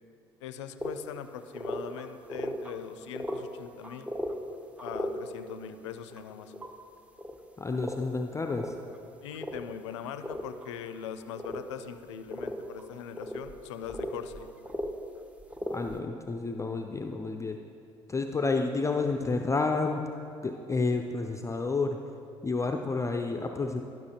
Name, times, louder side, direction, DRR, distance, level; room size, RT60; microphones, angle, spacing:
voice 1, 0.4-4.1 4.8-6.7 9.2-14.5, left 8 dB, 80° left, 10 dB, 0.4 m, -41 dB
sound 1, 0.8-0.9 1.2-1.3 1.5-2.7 3.0-3.4 3.8-4.4 4.8-5.1 6.1-6.7 7.2-7.4 7.8-8.0 8.6-9.0 9.3-9.6 10.1-10.7 11.4-11.6 11.9-12.0 12.3-12.9 13.1-14.9 15.4-16.0, left 1 dB, 10° right, 0.7 m, -36 dB
voice 2, 7.6-8.7 15.7-17.6 18.1-20.0 20.4-22.0 22.4-23.8, left 3 dB, 20° left, 5 dB, 0.4 m, -30 dB
11.5 x 6.0 x 2.9 m, 2.5 s
hypercardioid pair, 55°, 15 cm